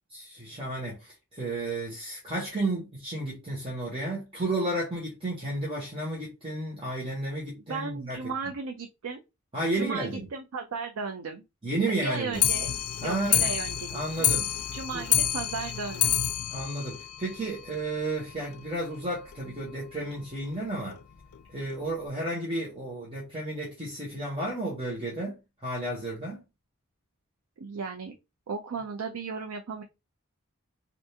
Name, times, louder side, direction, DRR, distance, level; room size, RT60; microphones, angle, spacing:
voice 1, 0.1-8.2 9.5-10.3 11.6-12.4 13.0-13.5 13.9-14.5 14.9-15.0 16.5-21.0 21.5-25.4 25.6-26.4, right 2 dB, 25° right, 1.0 m, -32 dB
voice 2, 7.5-9.2 9.7-11.4 12.0-12.7 13.0-13.9 14.2-14.3 14.7-16.1 27.6-28.2 28.5-29.8, right 4 dB, 85° right, 0.5 m, -35 dB
Clock, 12.3-17.8 18.2-18.3 18.5-18.6 18.9-19.0 19.3-19.4 20.1-20.2 20.9-21.0 21.7-21.8, left 10 dB, 85° left, 0.4 m, -28 dB
3.4 x 2.6 x 2.8 m
head